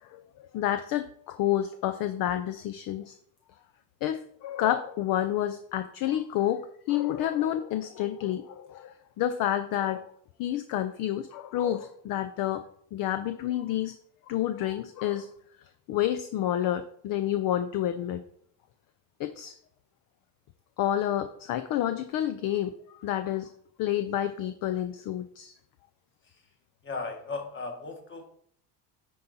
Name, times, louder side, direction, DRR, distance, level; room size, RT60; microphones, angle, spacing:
voice 1, 0.0-3.2 4.0-10.1 10.4-12.6 12.9-13.9 14.3-15.3 15.9-18.2 19.2-19.5 20.8-23.5 23.8-25.5, left 11 dB, 50° left, 10 dB, 0.6 m, -29 dB
voice 2, 26.8-28.3, left 3 dB, 25° left, 4 dB, 1.6 m, -36 dB
10.0 x 4.0 x 4.2 m, 0.64 s
cardioid pair, 125°, 46 cm